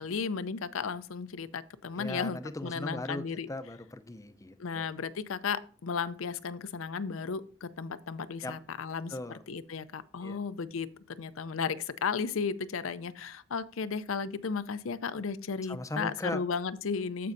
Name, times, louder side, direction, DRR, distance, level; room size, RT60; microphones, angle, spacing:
voice 1, 0.0-3.5 4.6-17.3, left 5 dB, 75° left, 0.5 m, -34 dB
voice 2, 2.0-4.9 8.4-8.6 9.1-9.4 10.2-10.4 15.6-16.4, left 1 dB, 15° left, 0.6 m, -38 dB
14.5 x 5.3 x 2.6 m
head